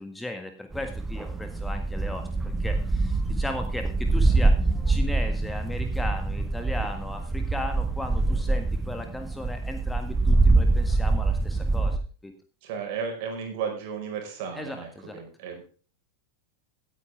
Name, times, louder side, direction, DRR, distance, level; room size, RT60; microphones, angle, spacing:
voice 1, 0.0-4.5 4.9-12.0 12.2-12.3 14.5-15.2, left 1 dB, 5° left, 5 dB, 1.7 m, -36 dB
sound 1, 0.7-12.0, right 3 dB, 10° right, 1.5 m, -25 dB
voice 2, 8.3-8.6 12.6-15.6, right 6 dB, 45° right, 4 dB, 5.0 m, -34 dB
17.5 x 9.5 x 3.5 m, 0.39 s
figure-of-eight pair, 90°, 0 cm